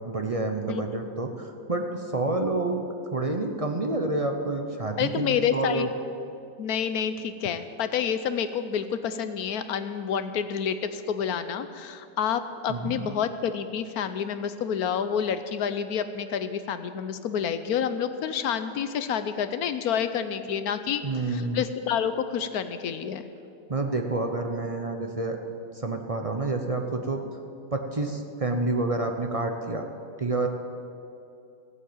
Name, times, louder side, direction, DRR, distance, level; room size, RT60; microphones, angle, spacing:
voice 1, 0.1-2.8 3.1-5.9 12.7-13.1 21.0-21.6 23.7-25.4 25.7-27.2 27.7-29.8 30.2-30.5, right 2 dB, 35° right, 4 dB, 0.6 m, -28 dB
voice 2, 5.0-5.9 6.6-23.2, left 8 dB, 65° left, 11 dB, 1.1 m, -28 dB
15.5 x 8.3 x 8.7 m, 2.6 s
omnidirectional pair, 1.9 m